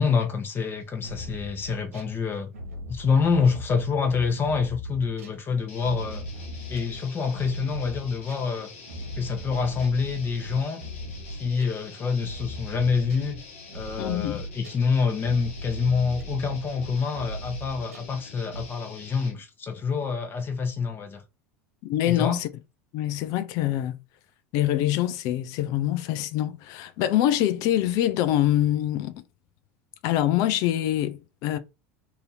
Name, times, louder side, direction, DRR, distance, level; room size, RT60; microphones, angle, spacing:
voice 1, 0.0-2.5 2.9-6.2 6.7-8.7 9.2-10.8 11.3-13.4 13.7-21.2 22.0-22.4, left 5 dB, 30° left, 1.0 m, -26 dB
sound 1, 0.8-2.1 2.5-8.5 8.9-18.2 18.5-18.6, equal, 85° right, 0.9 m, -38 dB
sound 2, 5.7-19.4, left 4 dB, 80° left, 1.0 m, -46 dB
voice 2, 14.0-14.4 21.8-22.5 22.9-24.0 24.5-29.2 30.0-31.6, left 13 dB, 55° left, 0.5 m, -25 dB
2.8 x 2.7 x 3.9 m
hypercardioid pair, 85°, 7 cm